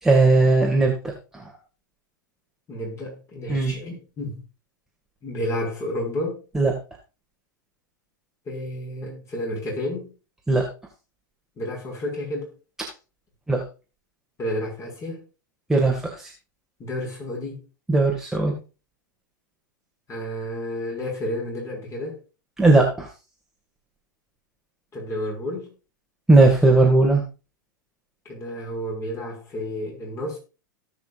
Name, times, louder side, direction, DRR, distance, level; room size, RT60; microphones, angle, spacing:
voice 1, 0.0-1.4 3.5-3.7 6.5-6.7 10.5-10.7 13.5-13.6 15.7-16.3 17.9-18.5 22.6-23.1 26.3-27.2, right 2 dB, 5° right, -1 dB, 2.4 m, -18 dB
voice 2, 2.7-4.4 5.2-6.4 8.5-10.1 11.6-12.5 14.4-15.2 16.8-17.6 20.1-22.2 24.9-25.7 28.2-30.4, left 1 dB, 25° left, -1 dB, 6.2 m, -31 dB
18.0 x 6.2 x 2.6 m, 0.31 s
hypercardioid pair, 100°, 11 cm